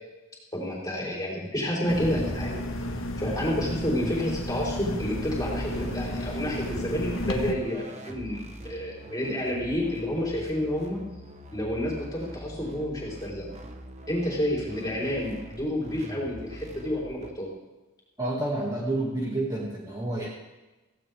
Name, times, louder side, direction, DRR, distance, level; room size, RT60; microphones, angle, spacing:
voice 1, 0.5-2.6 3.2-11.0 11.5-13.5 14.1-17.5, equal, 20° left, -4 dB, 4.4 m, -30 dB
sound 1, 1.9-7.5, left 1 dB, 80° left, 1.6 m, -32 dB
sound 2, 5.4-17.3, right 1 dB, 35° right, 1.1 m, -44 dB
voice 2, 18.2-20.3, right 2 dB, 20° right, -4 dB, 2.2 m, -29 dB
16.5 x 16.0 x 3.6 m, 1.1 s
head